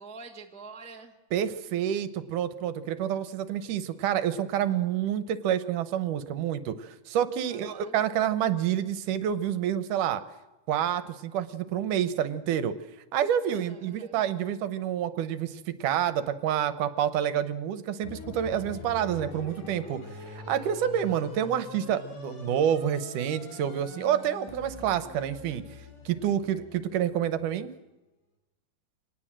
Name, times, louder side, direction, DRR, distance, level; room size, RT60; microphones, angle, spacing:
voice 1, 0.0-1.1 7.5-8.0 13.5-14.2, right 4 dB, 5° left, 3 dB, 0.6 m, -46 dB
voice 2, 1.3-10.2 10.7-12.7 13.1-20.0 20.3-25.6 26.1-27.7, right 10 dB, 75° right, 13 dB, 2.5 m, -28 dB
sound 1, 18.0-27.6, left 3 dB, 75° left, 5.0 m, -44 dB
25.5 x 19.0 x 7.5 m, 1.0 s
omnidirectional pair, 3.7 m